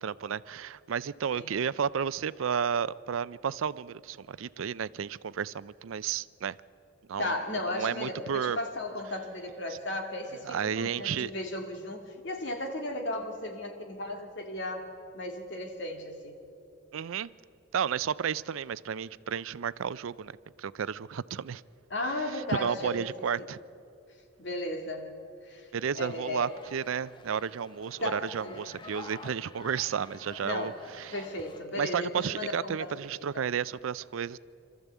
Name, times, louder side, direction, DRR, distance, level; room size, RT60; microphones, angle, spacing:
voice 1, 0.0-6.6 7.1-7.3 7.7-8.6 10.4-11.3 16.9-17.3 17.7-21.6 22.3-23.6 25.7-31.2 31.8-34.4, right 7 dB, 80° right, 18 dB, 0.4 m, -32 dB
voice 2, 7.2-14.9 15.1-16.4 21.9-23.1 24.4-25.1 25.4-25.7 26.0-26.5 28.0-28.6 30.4-30.8 31.1-33.5, left 1 dB, 60° left, 3 dB, 2.2 m, -35 dB
sound 1, 26.0-31.6, left 3 dB, 25° left, 0.7 m, -49 dB
25.5 x 13.5 x 8.2 m, 2.7 s
head